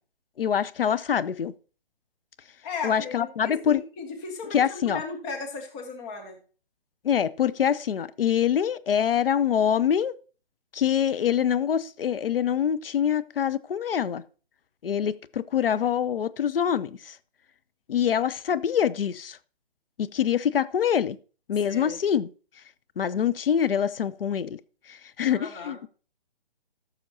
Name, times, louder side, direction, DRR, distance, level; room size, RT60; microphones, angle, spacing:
voice 1, 0.4-1.5 2.8-3.8 4.5-5.0 7.0-10.1 10.7-14.2 14.8-17.2 17.9-19.4 20.0-21.2 21.5-22.3 23.0-24.6 24.9-25.9, left 8 dB, 65° left, 0.5 m, -25 dB
voice 2, 2.6-6.4 21.6-22.0 25.3-25.8, left 4 dB, 10° left, 0.5 m, -36 dB
14.0 x 6.4 x 2.8 m
figure-of-eight pair, 145°, 30 cm